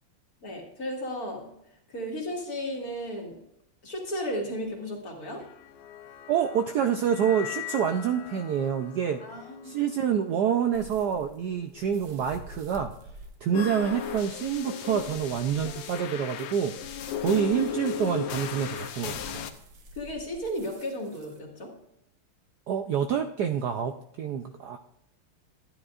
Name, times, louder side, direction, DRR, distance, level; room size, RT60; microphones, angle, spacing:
voice 1, 0.4-1.5 1.9-3.4 3.8-5.4 9.2-9.7 19.9-21.7, equal, 45° left, -1 dB, 2.3 m, -34 dB
sound 1, 5.4-11.8, left 13 dB, 65° left, 1.1 m, -44 dB
voice 2, 6.3-9.2 9.6-12.9 13.4-16.7 17.2-19.4 22.7-24.8, right 8 dB, 85° right, 7 dB, 0.9 m, -27 dB
sound 2, 10.7-21.4, right 1 dB, 55° right, 1.6 m, -50 dB
sound 3, 13.5-19.5, left 8 dB, 90° left, 1.7 m, -35 dB
12.0 x 10.0 x 2.4 m, 0.75 s
omnidirectional pair, 2.4 m